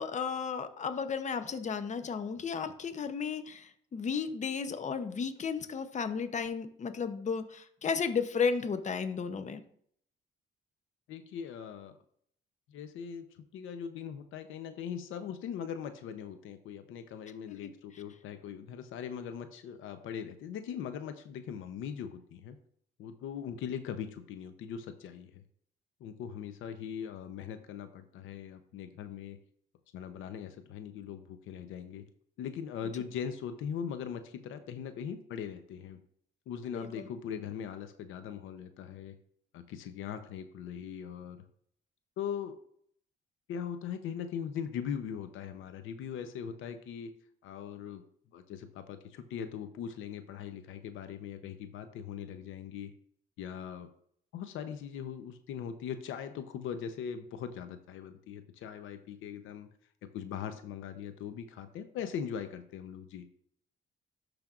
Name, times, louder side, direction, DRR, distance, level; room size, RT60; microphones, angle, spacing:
voice 1, 0.0-9.6 17.5-17.7 36.7-37.1, left 6 dB, 35° left, 10 dB, 0.7 m, -34 dB
voice 2, 11.1-12.0 12.7-13.2 13.5-22.6 23.0-25.4 26.0-29.4 29.9-32.0 32.4-36.0 36.5-39.2 39.5-41.4 42.2-42.6 43.5-47.1 47.4-48.0 48.3-52.9 53.4-53.9 54.3-59.7 60.1-63.3, left 8 dB, 85° left, 9 dB, 0.7 m, -40 dB
12.0 x 5.1 x 2.5 m, 0.63 s
cardioid pair, 90°, 20 cm